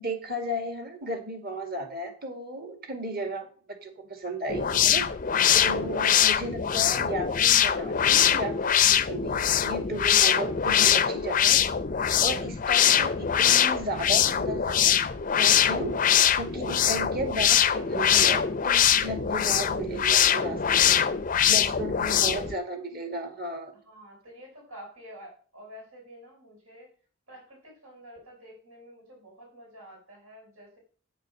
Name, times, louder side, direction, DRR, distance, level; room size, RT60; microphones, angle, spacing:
voice 1, 0.0-5.1 5.6-11.6 12.2-15.0 15.4-15.9 16.4-21.0 21.5-23.7, right 1 dB, 45° right, 5 dB, 2.1 m, -34 dB
sound 1, 4.5-22.5, left 9 dB, 40° left, 0.5 m, -23 dB
voice 2, 23.8-26.9 27.3-30.8, equal, 85° right, -1 dB, 5.3 m, -49 dB
9.1 x 6.8 x 6.3 m, 0.41 s
head